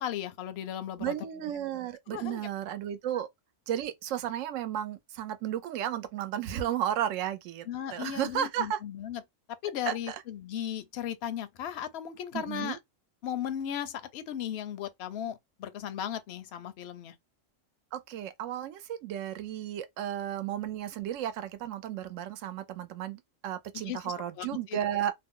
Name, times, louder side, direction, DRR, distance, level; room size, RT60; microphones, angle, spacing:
voice 1, 0.0-1.1 2.1-2.5 7.7-9.2 9.6-12.8 13.2-17.1 23.8-24.8, left 10 dB, 65° left, 0.7 m, -36 dB
voice 2, 1.0-3.3 3.7-7.7 7.9-8.8 9.8-10.2 12.3-12.8 17.9-25.1, right 10 dB, 80° right, 0.9 m, -33 dB
2.6 x 2.0 x 3.6 m
omnidirectional pair, 1.3 m